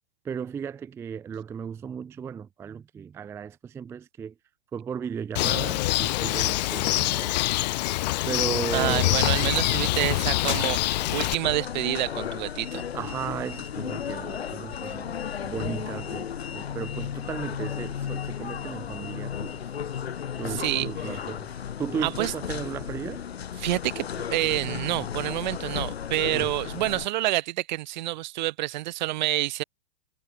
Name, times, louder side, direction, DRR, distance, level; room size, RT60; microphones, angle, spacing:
voice 1, 0.2-4.3 4.7-7.4 8.3-9.2 12.9-19.6 20.4-21.5 21.8-23.2 26.3-26.5, right 7 dB, 10° right, 0.4 m, -35 dB
Bird, 5.4-11.4, left 18 dB, 40° left, 0.6 m, -25 dB
sound 1, 8.7-27.1, left 8 dB, 65° left, 2.5 m, -34 dB
voice 2, 8.7-12.8 20.5-21.2 22.0-22.3 23.6-29.6, right 17 dB, 45° right, 0.7 m, -28 dB
figure-of-eight pair, 100°, 33 cm